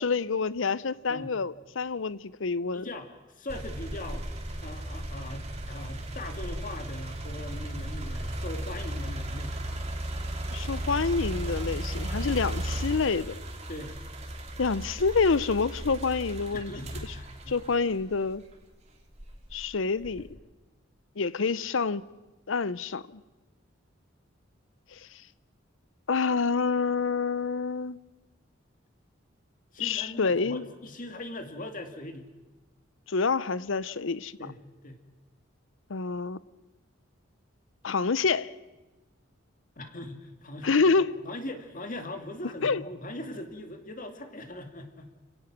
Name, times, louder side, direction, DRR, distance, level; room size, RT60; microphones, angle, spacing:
voice 1, 0.0-2.9 10.5-13.4 14.6-16.7 17.5-18.4 19.5-20.3 21.2-22.0 22.5-23.2 24.9-25.0 26.1-28.0 29.8-30.6 33.1-34.3 35.9-36.4 37.8-38.5 40.6-41.2 42.6-42.8, left 4 dB, 70° left, 0.7 m, -27 dB
voice 2, 2.7-3.1 3.3-4.3 4.6-9.8 13.7-14.0 16.5-17.6 29.7-32.3 34.4-35.0 39.8-40.7 41.2-45.1, left 1 dB, 45° left, 2.3 m, -40 dB
sound 1, 3.5-18.5 19.1-20.3, right 1 dB, 35° right, 2.8 m, -36 dB
29.5 x 17.0 x 6.1 m
head